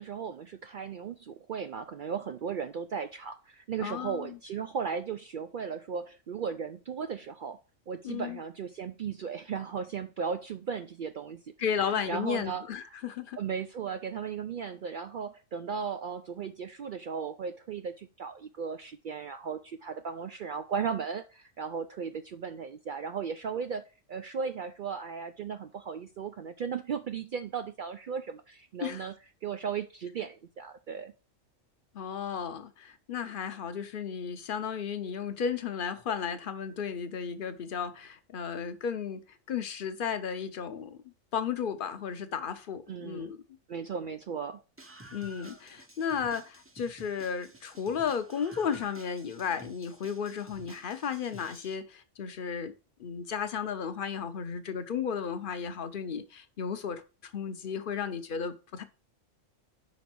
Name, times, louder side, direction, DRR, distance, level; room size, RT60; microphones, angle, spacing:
voice 1, 0.0-7.6 7.9-11.4 11.7-13.0 13.4-29.1 29.4-31.1 42.9-43.3 43.7-44.6, right 6 dB, 70° right, 0.4 m, -36 dB
voice 2, 3.8-4.4 8.0-8.4 11.6-13.4 28.8-29.0 31.9-39.2 39.5-41.0 41.3-43.4 45.1-52.7 53.0-58.8, left 7 dB, 50° left, 0.8 m, -34 dB
Screaming, 44.8-51.8, right 1 dB, 15° right, 0.5 m, -52 dB
5.3 x 5.1 x 6.0 m
omnidirectional pair, 1.4 m